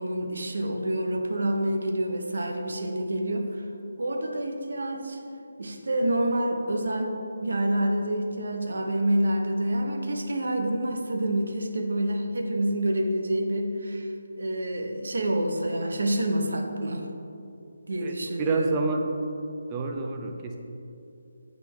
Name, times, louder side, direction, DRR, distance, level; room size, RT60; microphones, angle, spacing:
voice 1, 0.0-3.7 4.0-5.2 5.6-14.1 14.4-17.1 17.9-18.8, right 1 dB, 70° right, 4 dB, 0.8 m, -27 dB
voice 2, 18.0-19.0 19.7-20.6, right 3 dB, 20° right, 3 dB, 0.5 m, -28 dB
7.3 x 5.7 x 3.2 m, 2.7 s
figure-of-eight pair, 155°, 0 cm